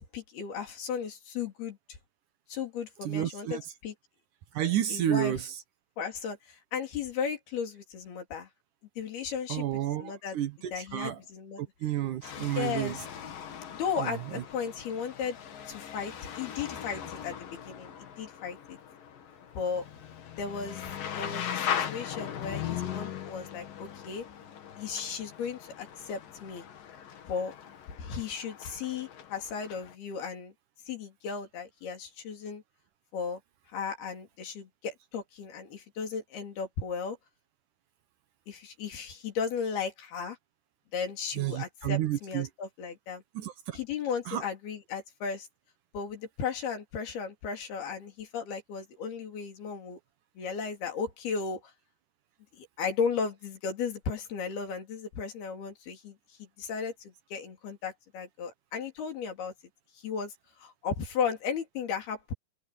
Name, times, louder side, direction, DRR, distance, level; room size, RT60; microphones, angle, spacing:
voice 1, 0.0-1.8 2.5-3.9 4.9-5.4 6.0-8.5 9.0-10.4 10.7-11.6 12.4-13.1 13.7-15.4 15.7-18.8 19.6-19.9 20.4-24.3 24.8-26.7 27.3-27.5 28.0-30.5 30.9-32.6 33.1-33.4 33.7-37.2 38.5-40.4 40.9-43.2 43.7-45.5 45.9-50.0 50.4-51.7 52.6-59.5 60.0-62.3, left 6 dB, 80° left, 5.6 m, -35 dB
voice 2, 3.0-3.6 4.5-5.4 9.5-11.2 11.6-13.0 14.0-14.4 41.4-42.5 43.4-43.8 44.3-44.4, right 12 dB, 65° right, 2.3 m, -31 dB
sound 1, 12.2-29.9, left 9 dB, 65° left, 3.7 m, -39 dB
omnidirectional pair, 4.4 m